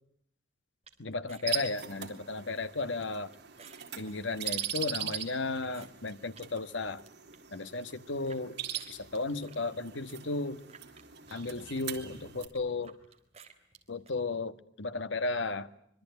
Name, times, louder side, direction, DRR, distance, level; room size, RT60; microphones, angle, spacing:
sound 1, 0.8-6.5 6.9-8.4 8.8-14.1, right 6 dB, 35° right, 3.8 m, -58 dB
voice 1, 1.0-3.3 4.0-7.0 7.5-8.5 8.9-10.6 11.3-13.0 13.9-15.7, left 3 dB, 80° left, 11 dB, 1.5 m, -34 dB
sound 2, 1.5-12.5, right 9 dB, 65° right, 3.6 m, -41 dB
25.5 x 23.5 x 9.4 m, 0.73 s
head